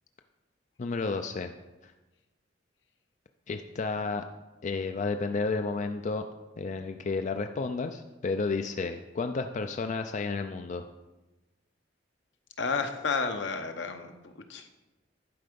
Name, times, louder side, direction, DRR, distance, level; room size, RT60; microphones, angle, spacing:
voice 1, 0.8-1.5 1.8-1.9 3.5-4.3 4.6-6.3 6.6-10.9, left 4 dB, 40° left, 7 dB, 0.4 m, -31 dB
voice 2, 12.6-14.7, left 4 dB, 75° left, 7 dB, 0.8 m, -32 dB
11.5 x 4.7 x 5.2 m, 1.1 s
head